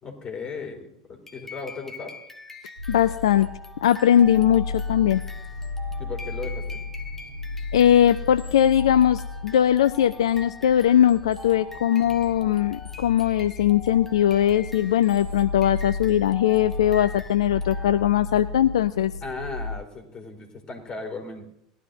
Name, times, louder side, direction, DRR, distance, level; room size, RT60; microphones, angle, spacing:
voice 1, 0.0-2.1 6.0-6.8 19.2-21.5, left 4 dB, 30° left, 2 dB, 3.9 m, -36 dB
sound 1, 1.3-18.3, left 2 dB, 10° left, 1.3 m, -43 dB
sound 2, 2.8-19.7, left 3 dB, 70° right, 6.1 m, -35 dB
voice 2, 2.9-3.5 3.8-5.2 7.7-19.1, left 10 dB, 70° left, 13 dB, 0.4 m, -20 dB
20.0 x 12.0 x 2.7 m, 0.77 s
figure-of-eight pair, 80°, 3 cm